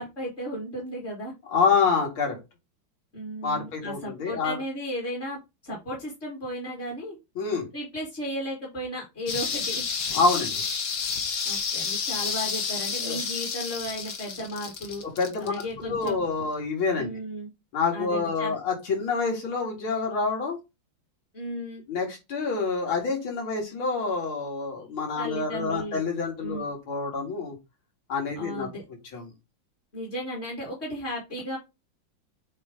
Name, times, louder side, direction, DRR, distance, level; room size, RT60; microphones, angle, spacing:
voice 1, 0.0-1.3 3.1-7.2 7.7-9.9 11.4-15.0 15.4-16.2 17.0-17.5 17.9-18.6 21.3-21.8 25.2-26.0 26.4-26.6 28.4-28.8 29.9-31.6, equal, 30° left, -3 dB, 2.3 m, -35 dB
voice 2, 1.5-2.4 3.4-4.6 7.4-7.6 10.1-10.6 13.0-13.2 15.0-17.1 17.7-20.6 21.9-27.6 28.1-28.7 29.1-29.3, left 4 dB, 75° left, 0 dB, 2.8 m, -27 dB
sound 1, 9.3-16.3 16.6-16.7, left 5 dB, 50° left, 1.3 m, -30 dB
7.5 x 3.3 x 3.8 m, 0.24 s
omnidirectional pair, 2.3 m